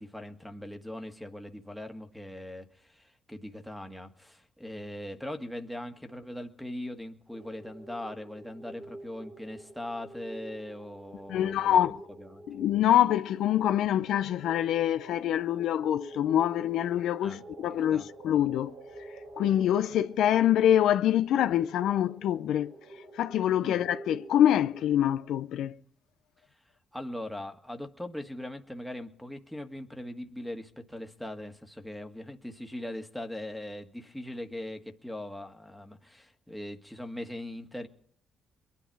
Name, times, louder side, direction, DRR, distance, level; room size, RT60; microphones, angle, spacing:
voice 1, 0.0-12.4 17.2-17.4 17.9-18.0 23.6-23.8 26.9-37.9, left 1 dB, ahead, 1.6 m, -40 dB
sound 1, 7.3-25.2, right 1 dB, 75° right, 3.3 m, -47 dB
voice 2, 11.3-12.0 12.5-18.7 19.4-22.7 23.1-25.8, left 11 dB, 80° left, 0.6 m, -25 dB
22.0 x 10.5 x 4.7 m
cardioid pair, 90°, 0 cm